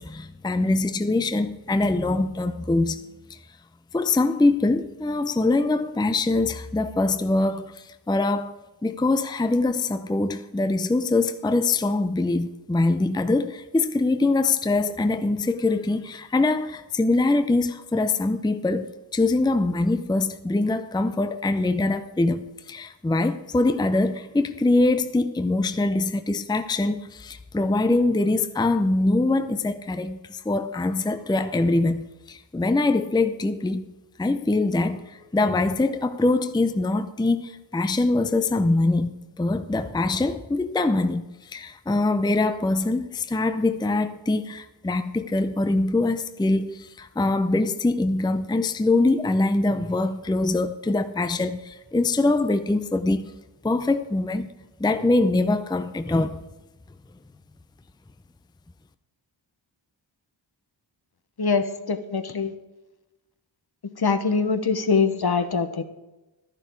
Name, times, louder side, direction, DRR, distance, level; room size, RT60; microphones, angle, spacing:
voice 1, 0.0-3.0 3.3-3.4 3.9-8.5 8.8-33.9 34.2-39.1 39.4-53.3 53.6-54.5 54.8-56.4, left 2 dB, 10° left, 0.5 m, -23 dB
voice 2, 61.4-62.5 64.0-65.8, left 5 dB, 55° left, 1.1 m, -23 dB
11.5 x 10.5 x 4.6 m
wide cardioid pair, 60°, 47 cm